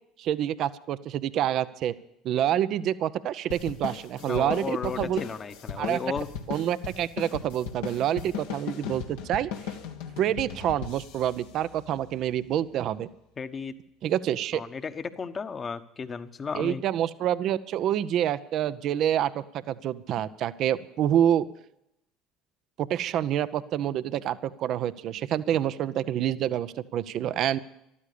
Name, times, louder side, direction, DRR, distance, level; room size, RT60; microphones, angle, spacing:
voice 1, 0.2-1.9 2.2-5.2 5.8-6.0 6.5-9.5 10.2-13.1 14.0-14.6 16.6-21.4 22.8-27.6, right 11 dB, 55° right, 14 dB, 0.7 m, -27 dB
sound 1, 3.5-12.3, left 7 dB, 80° left, 1.7 m, -38 dB
voice 2, 4.2-6.3 13.4-13.7 14.5-16.8, left 5 dB, 35° left, 11 dB, 1.2 m, -34 dB
14.0 x 12.5 x 6.8 m, 0.79 s
hypercardioid pair, 70°, 0 cm